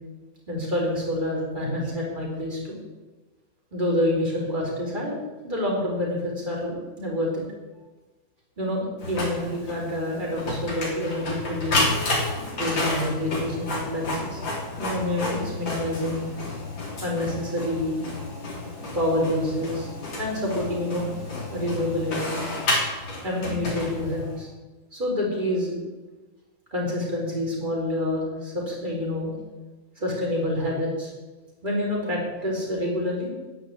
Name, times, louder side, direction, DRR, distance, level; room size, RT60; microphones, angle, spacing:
voice 1, 0.5-2.8 3.7-5.2 5.4-7.4 8.6-11.9 12.6-14.4 14.8-16.3 17.0-18.0 18.9-19.9 20.2-21.1 21.5-22.4 23.2-24.5 24.9-25.8 26.7-29.3 30.0-31.1 31.6-33.3, left 1 dB, 25° right, -3 dB, 4.4 m, -27 dB
Printer, 9.0-24.4, left 2 dB, 80° left, 4.0 m, -30 dB
10.5 x 9.9 x 8.2 m, 1.2 s
omnidirectional pair, 2.0 m